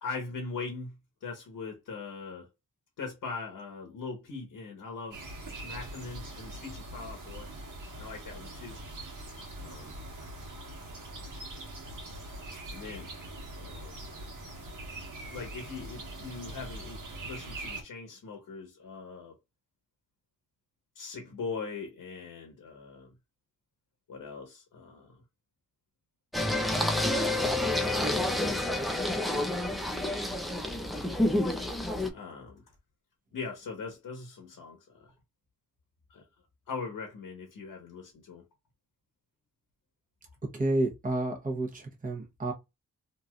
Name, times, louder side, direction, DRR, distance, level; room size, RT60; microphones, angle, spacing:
voice 1, 0.0-2.5 3.0-5.3 5.6-7.5 8.0-8.8 9.6-10.0 12.7-13.1 13.5-14.1 15.3-19.3 20.9-23.1 24.1-25.2 30.2-30.4 32.1-32.6 33.3-35.1 36.1-36.2 36.7-38.5, left 4 dB, 75° left, 1.0 m, -41 dB
sound 1, 5.1-17.8, right 1 dB, 65° right, 1.3 m, -42 dB
Singing, 26.3-32.1, left 1 dB, ahead, 0.4 m, -29 dB
voice 2, 40.5-42.5, right 2 dB, 25° right, 0.9 m, -30 dB
3.1 x 2.6 x 2.3 m
wide cardioid pair, 100°, 33 cm